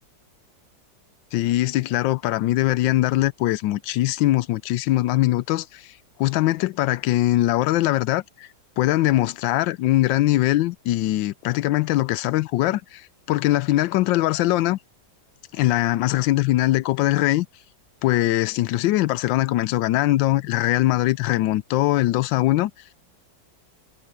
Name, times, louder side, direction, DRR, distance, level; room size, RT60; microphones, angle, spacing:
voice 1, 1.3-5.9 6.2-8.5 8.8-14.8 15.5-17.5 18.0-22.7, left 16 dB, 90° left, 1.3 m, -21 dB
omnidirectional pair, 2.0 m